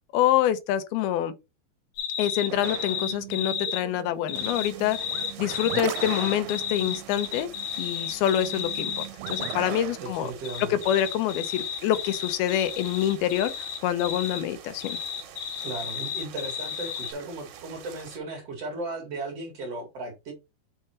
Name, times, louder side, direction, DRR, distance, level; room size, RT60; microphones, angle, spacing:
voice 1, 0.1-1.3 2.2-5.1 5.4-7.5 7.8-10.3 10.6-15.0, left 11 dB, 80° left, 2.6 m, -26 dB
sound 1, 2.0-3.8 4.3-9.6 10.4-14.4 14.8-17.1, left 8 dB, 65° left, 3.1 m, -33 dB
sound 2, 2.5-10.0, right 16 dB, 90° right, 2.6 m, -39 dB
sound 3, 4.3-18.2, right 8 dB, 65° right, 2.7 m, -48 dB
voice 2, 10.0-10.8 15.6-20.3, right 2 dB, 50° right, 2.4 m, -36 dB
6.9 x 5.7 x 4.3 m
omnidirectional pair, 4.5 m